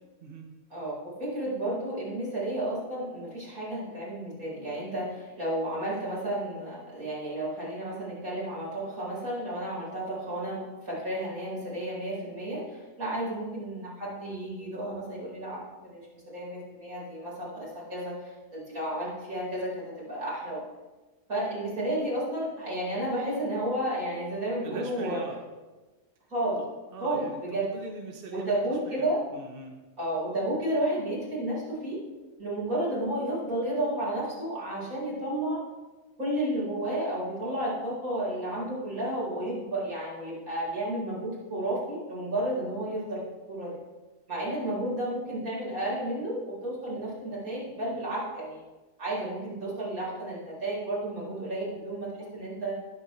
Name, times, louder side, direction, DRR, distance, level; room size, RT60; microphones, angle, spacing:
voice 1, 0.7-15.6 15.9-20.6 21.3-25.2 26.3-26.6 27.0-27.6 28.3-29.2 30.0-32.0 32.4-35.6 36.2-43.2 43.5-43.8 44.3-48.6 49.0-52.7, right 1 dB, 75° right, -6 dB, 5.2 m, -32 dB
voice 2, 24.6-25.4 26.9-29.8, right 3 dB, 40° right, 1 dB, 1.2 m, -42 dB
19.0 x 8.0 x 3.3 m, 1.2 s
omnidirectional pair, 1.5 m